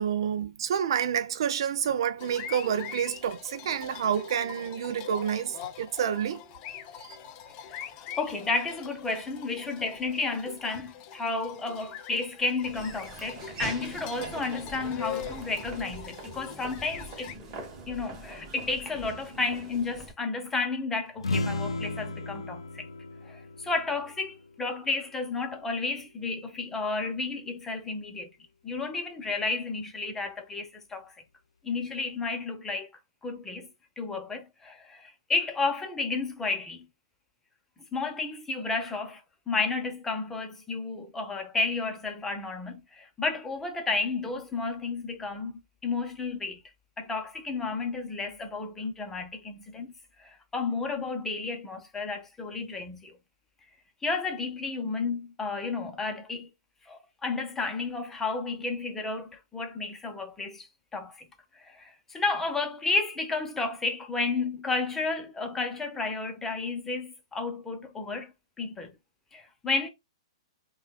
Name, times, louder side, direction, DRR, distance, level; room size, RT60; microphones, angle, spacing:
voice 1, 0.0-6.4 7.0-7.2, right 8 dB, 60° right, 0.4 m, -29 dB
sound 1, 2.2-17.4, left 9 dB, 35° left, 0.5 m, -43 dB
voice 2, 8.2-17.4 17.9-22.9 23.2-28.3 28.6-31.1 31.6-32.9 33.2-33.7 34.0-36.9 37.9-45.5 45.8-46.6 47.0-49.9 50.2-53.1 54.0-56.5 56.8-61.3 61.5-68.3 68.6-68.9 69.3-69.9, left 3 dB, 10° left, 0.8 m, -32 dB
Laughter / Walk footsteps, 12.6-20.1, right 3 dB, 30° right, 1.3 m, -42 dB
sound 2, 21.2-24.9, left 2 dB, 80° left, 0.5 m, -34 dB
5.4 x 2.4 x 2.3 m
hypercardioid pair, 115°, 3 cm